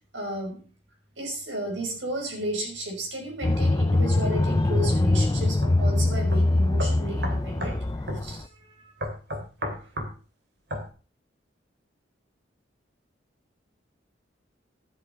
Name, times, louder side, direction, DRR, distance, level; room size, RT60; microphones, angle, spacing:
voice 1, 0.1-0.6 1.2-8.9 9.8-9.9, right 1 dB, 85° right, 0 dB, 5.8 m, -33 dB
sound 1, 3.4-8.4, left 2 dB, 20° left, 0.4 m, -23 dB
sound 2, 5.6-5.8 6.3-6.4 6.8-7.8 8.1-8.2 9.0-10.1 10.7-10.9, equal, 60° right, 3.0 m, -32 dB
12.0 x 8.4 x 4.6 m, 0.37 s
head